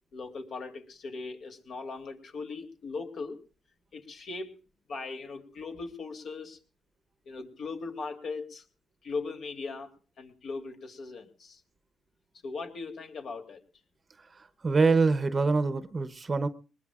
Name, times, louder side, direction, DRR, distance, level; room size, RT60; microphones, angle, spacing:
voice 1, 0.1-3.4 3.9-4.5 4.9-6.6 7.2-8.6 9.0-9.9 10.2-11.6 12.4-13.6, left 4 dB, 60° left, 5 dB, 3.0 m, -39 dB
voice 2, 14.6-16.5, right 4 dB, 30° right, 13 dB, 0.9 m, -24 dB
21.5 x 20.5 x 2.4 m, 0.35 s
cardioid pair, 90°, 0 cm